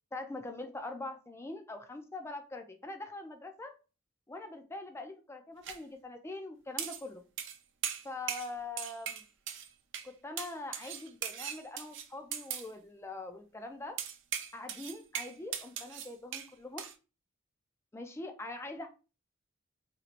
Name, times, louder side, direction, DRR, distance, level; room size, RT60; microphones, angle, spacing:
voice 1, 0.1-3.7 4.3-7.2 8.0-9.2 10.0-14.0 14.5-16.8 17.9-18.9, left 2 dB, 15° left, 6 dB, 0.4 m, -43 dB
sound 1, 5.6-5.8 6.8-7.1 7.4-7.6 7.8-8.5 8.8-9.7 9.9-10.1 10.4-12.7 14.0-16.5 16.8-16.9, right 9 dB, 60° right, 0.4 m, -39 dB
3.0 x 2.9 x 2.4 m, 0.33 s
head